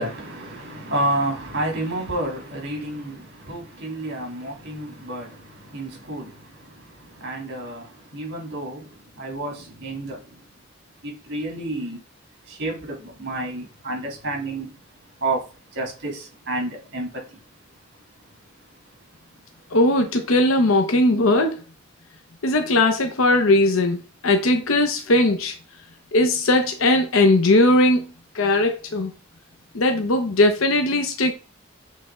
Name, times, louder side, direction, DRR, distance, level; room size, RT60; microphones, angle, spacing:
voice 1, 0.0-10.4 11.0-12.0 12.5-14.7 15.2-17.4 18.8-18.9, right 2 dB, 60° right, 3.1 m, -30 dB
voice 2, 19.7-21.5 22.4-25.5 26.1-28.1 28.3-29.1 29.7-31.3, left 2 dB, 85° left, 0.8 m, -19 dB
7.4 x 3.4 x 3.7 m
head